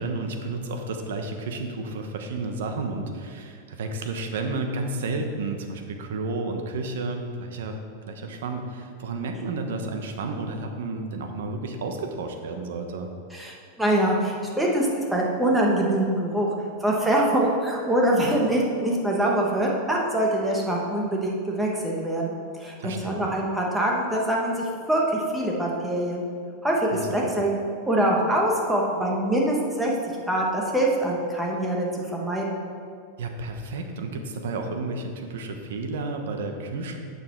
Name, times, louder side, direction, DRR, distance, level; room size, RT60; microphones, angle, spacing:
voice 1, 0.0-7.8 8.1-13.1 22.8-23.2 26.9-27.3 33.2-37.0, right 3 dB, 85° right, 4 dB, 1.1 m, -31 dB
voice 2, 13.3-16.5 16.8-26.2 26.6-27.5 27.9-29.9 30.3-32.6, right 1 dB, 5° right, -2 dB, 1.3 m, -24 dB
9.0 x 6.7 x 4.6 m, 2.2 s
supercardioid pair, 155°, 0 cm